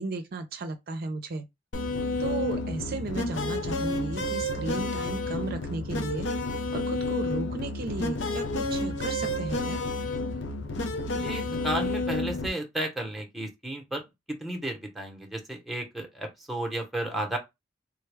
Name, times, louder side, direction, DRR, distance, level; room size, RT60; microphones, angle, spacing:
voice 1, 0.0-1.4 2.2-6.3 6.7-9.8, right 3 dB, 55° right, 0.5 m, -34 dB
sound 1, 1.7-12.5, left 2 dB, 65° left, 0.6 m, -30 dB
voice 2, 11.1-14.0 14.3-17.4, right 1 dB, ahead, 0.8 m, -33 dB
3.5 x 2.2 x 3.3 m
head